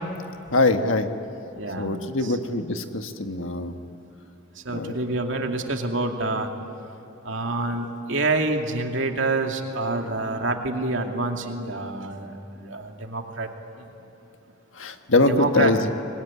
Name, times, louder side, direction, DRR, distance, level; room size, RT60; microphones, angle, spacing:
voice 1, 0.5-1.1 1.8-3.7 4.7-5.0 14.8-15.9, left 2 dB, 75° left, 7 dB, 1.5 m, -23 dB
voice 2, 1.6-1.9 2.2-2.4 4.6-6.5 7.2-12.3 12.6-13.5 15.3-15.9, right 2 dB, 70° right, 3 dB, 2.4 m, -27 dB
26.0 x 21.5 x 9.9 m, 2.9 s
head